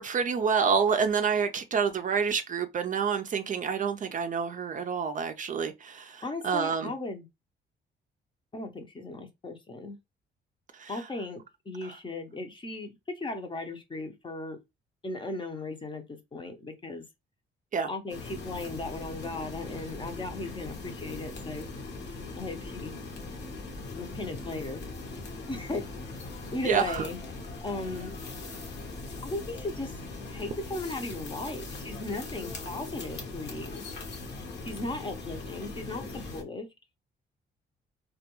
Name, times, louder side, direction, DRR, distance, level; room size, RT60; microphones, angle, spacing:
voice 1, 0.0-6.9 10.7-11.0 11.8-11.9 17.7-17.9 26.6-27.1, right 6 dB, 40° right, 0.4 m, -28 dB
voice 2, 6.2-7.3 8.5-10.0 10.9-14.6 15.0-17.0 17.9-21.7 22.3-23.0 23.9-24.8 25.4-25.9 26.5-27.2 27.6-28.1 29.2-30.0 30.3-33.8 34.6-36.7, left 2 dB, 25° left, 0.6 m, -37 dB
sound 1, 18.1-36.4, left 3 dB, 60° left, 0.9 m, -40 dB
2.2 x 2.2 x 2.9 m
cardioid pair, 90°, 20 cm